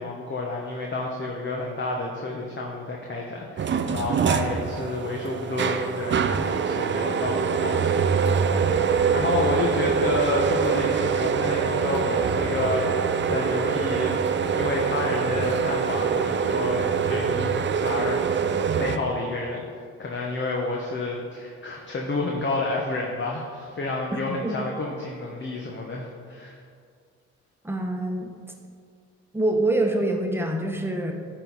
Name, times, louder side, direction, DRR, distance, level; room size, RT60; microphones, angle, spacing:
voice 1, 0.0-8.2 8.7-18.4 18.8-19.7 20.0-26.6, left 2 dB, 35° left, -1 dB, 1.1 m, -30 dB
sound 1, 3.6-19.0, right 6 dB, 35° right, 0.6 m, -24 dB
voice 2, 27.6-28.3 29.3-31.1, right 2 dB, 5° right, 2 dB, 1.2 m, -25 dB
11.5 x 4.2 x 4.1 m, 2.2 s
supercardioid pair, 60°, 32 cm